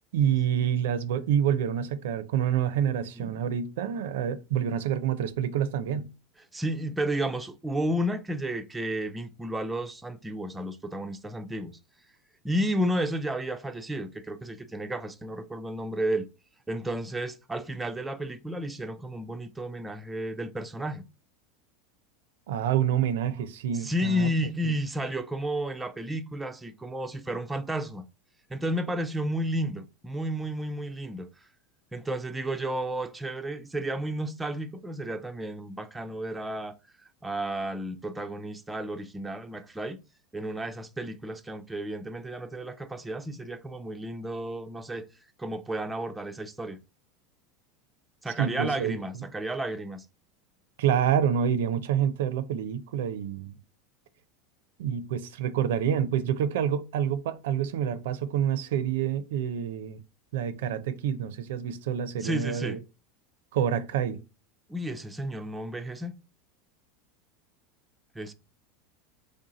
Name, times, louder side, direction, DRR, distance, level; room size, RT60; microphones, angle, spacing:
voice 1, 0.1-6.1 22.5-24.3 48.4-48.9 50.8-53.6 54.8-60.0 60.3-62.8 63.5-64.2, right 9 dB, 80° right, 0.4 m, -27 dB
voice 2, 6.5-11.8 12.4-16.3 16.7-21.0 23.7-28.0 28.5-31.3 31.9-36.7 37.2-40.0 40.3-45.1 45.4-46.8 48.2-50.1 62.2-62.8 64.7-66.2 68.2-68.3, right 1 dB, 10° right, 0.4 m, -32 dB
3.4 x 2.7 x 3.7 m
supercardioid pair, 135°, 0 cm